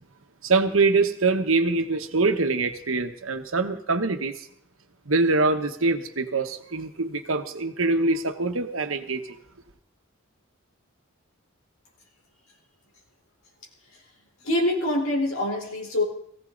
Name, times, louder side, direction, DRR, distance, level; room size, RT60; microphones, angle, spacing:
voice 1, 0.4-4.3 5.1-9.2, right 3 dB, 70° right, 1.4 m, -24 dB
voice 2, 14.4-16.0, left 1 dB, 90° left, 4.1 m, -25 dB
19.5 x 16.0 x 4.0 m
head